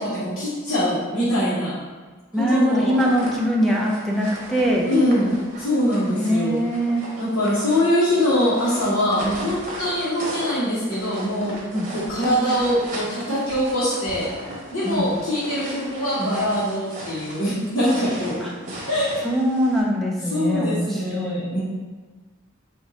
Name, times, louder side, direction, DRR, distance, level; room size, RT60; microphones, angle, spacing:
voice 1, 0.0-1.8 2.4-3.0 4.8-6.6 7.2-11.5 11.9-14.3 14.7-18.4 18.9-19.3 20.3-21.6, equal, 60° left, -12 dB, 1.2 m, -23 dB
voice 2, 2.3-4.9 6.2-7.0 11.7-11.9 14.8-15.1 18.4-18.5 19.2-21.4, equal, ahead, -2 dB, 0.5 m, -22 dB
sound 1, 2.7-19.8, right 1 dB, 40° right, 1.0 m, -37 dB
4.4 x 2.6 x 3.9 m, 1.3 s
head